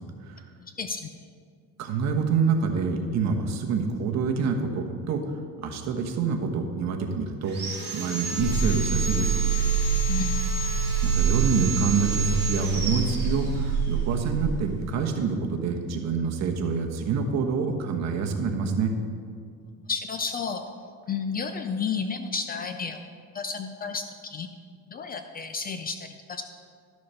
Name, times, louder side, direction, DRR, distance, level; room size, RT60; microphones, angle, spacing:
voice 1, 0.6-1.1 10.1-10.4 19.8-20.6 21.1-23.0 23.3-24.5 24.9-26.4, left 5 dB, 25° left, 7 dB, 0.4 m, -32 dB
voice 2, 1.8-7.6 7.9-9.4 11.0-18.9, right 5 dB, 50° right, 3 dB, 1.2 m, -27 dB
Sawing, 7.4-13.9, right 1 dB, 30° right, 3.0 m, -33 dB
sound 1, 8.4-14.4, right 6 dB, 55° left, 2.3 m, -26 dB
11.5 x 6.4 x 5.6 m, 2.1 s
cardioid pair, 155°, 34 cm